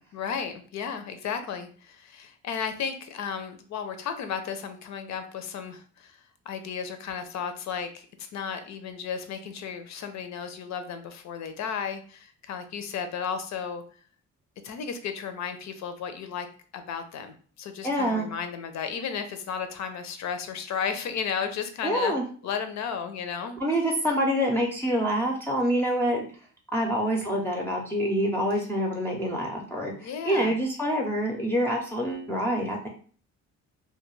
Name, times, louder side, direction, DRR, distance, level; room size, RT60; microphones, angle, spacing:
voice 1, 0.1-6.2 6.5-13.8 14.6-16.5 16.7-22.1 22.4-23.6 30.0-30.5, left 6 dB, 65° left, 8 dB, 0.5 m, -34 dB
voice 2, 17.8-18.3 21.8-22.2 23.6-26.3 26.7-32.9, equal, 10° left, -2 dB, 0.5 m, -26 dB
2.2 x 2.2 x 3.1 m, 0.44 s
cardioid pair, 90°, 30 cm